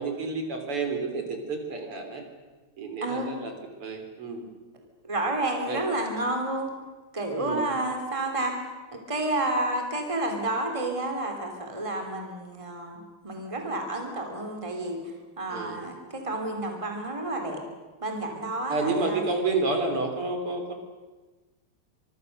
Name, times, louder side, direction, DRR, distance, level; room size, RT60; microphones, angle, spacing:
voice 1, 0.0-2.2 2.8-3.5 3.8-4.4 5.7-5.8 7.4-7.7 15.5-15.8 18.7-20.7, right 3 dB, 90° right, 5 dB, 4.5 m, -30 dB
voice 2, 5.0-6.7 7.1-8.6 8.9-15.0 15.4-17.6 18.0-19.2, right 2 dB, 15° right, 3 dB, 3.1 m, -30 dB
25.5 x 23.5 x 6.7 m, 1.3 s
omnidirectional pair, 2.4 m